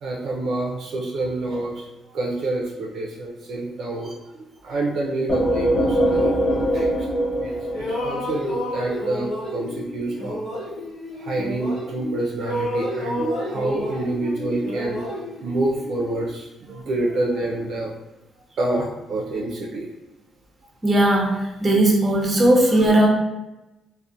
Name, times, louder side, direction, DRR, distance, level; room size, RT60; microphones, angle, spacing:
voice 1, 0.0-10.4 11.1-17.9 18.6-19.9 22.7-23.0, right 2 dB, 65° right, -2 dB, 0.4 m, -28 dB
sound 1, 5.3-8.9, equal, 45° left, 0.4 m, -23 dB
sound 2, 6.0-7.4 7.7-12.1 12.4-16.2, left 1 dB, 80° left, 0.9 m, -31 dB
voice 2, 20.8-23.1, right 1 dB, 25° right, -2 dB, 0.6 m, -17 dB
2.4 x 2.1 x 2.7 m, 0.99 s
cardioid pair, 90°, 0 cm